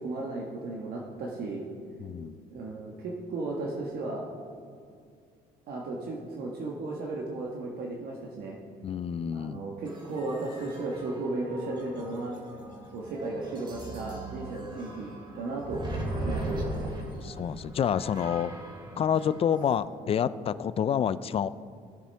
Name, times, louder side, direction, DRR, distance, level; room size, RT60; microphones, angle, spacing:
voice 1, 0.0-1.6 2.5-4.2 5.7-8.6 9.3-12.4 12.9-15.8 16.2-16.9, right 2 dB, 65° right, -2 dB, 1.4 m, -35 dB
voice 2, 2.0-2.4 8.8-9.6 17.2-18.5 19.0-21.5, left 8 dB, 35° left, 16 dB, 0.4 m, -28 dB
sound 1, 9.9-19.8, right 1 dB, 25° right, 2.3 m, -38 dB
17.5 x 7.3 x 3.4 m, 2.3 s
cardioid pair, 110°, 17 cm